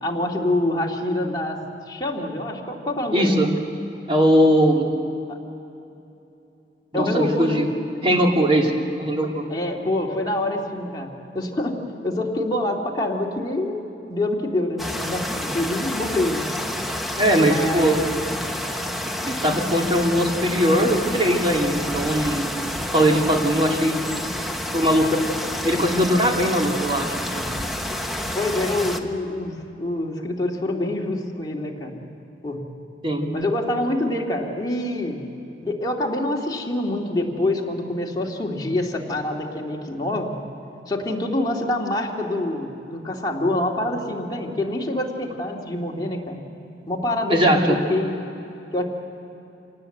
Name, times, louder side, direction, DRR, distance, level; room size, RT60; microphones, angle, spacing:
voice 1, 0.0-1.6 1.9-3.5 5.3-5.4 6.9-7.6 9.5-13.8 14.1-16.5 17.4-18.1 28.3-31.9 32.4-32.6 33.3-35.2 35.6-40.4 40.9-46.4 46.9-48.2 48.7-48.8, left 1 dB, 25° left, -1 dB, 2.5 m, -26 dB
voice 2, 3.1-3.5 4.1-4.9 6.9-7.7 8.0-8.7 9.0-9.4 17.2-18.0 19.3-22.5 22.9-24.0 24.7-25.2 25.6-27.1 27.3-27.4 33.0-33.3 47.3-47.8, equal, 30° right, 0 dB, 2.8 m, -20 dB
sound 1, 14.8-29.0, left 1 dB, ahead, 1.2 m, -29 dB
27.0 x 18.5 x 7.9 m, 2.8 s
head